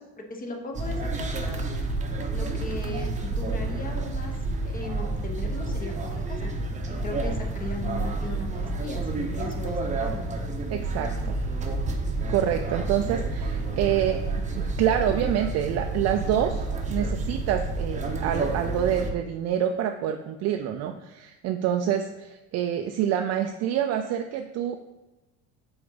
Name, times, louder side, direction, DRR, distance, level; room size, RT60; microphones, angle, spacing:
voice 1, 0.0-1.6 2.3-4.3 4.6-6.5 6.9-10.3, left 2 dB, 30° left, 3 dB, 1.0 m, -37 dB
sound 1, 0.7-19.1, right 2 dB, 25° right, 0.7 m, -29 dB
voice 2, 10.7-11.5 12.3-24.8, right 10 dB, 60° right, 6 dB, 0.4 m, -27 dB
6.8 x 3.9 x 3.9 m, 1.1 s
cardioid pair, 115°, 30 cm